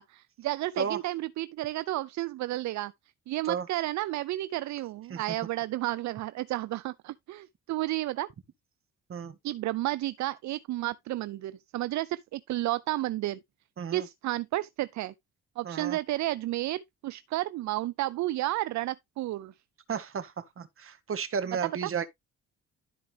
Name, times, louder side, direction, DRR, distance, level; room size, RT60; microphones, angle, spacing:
voice 1, 0.0-2.9 3.3-8.3 9.4-13.4 13.9-15.1 15.6-19.5 21.6-21.9, right 16 dB, 70° right, 0.5 m, -32 dB
voice 2, 15.6-16.0 19.9-22.1, right 6 dB, 45° right, 1.5 m, -33 dB
12.5 x 4.7 x 3.4 m
cardioid pair, 90°, 30 cm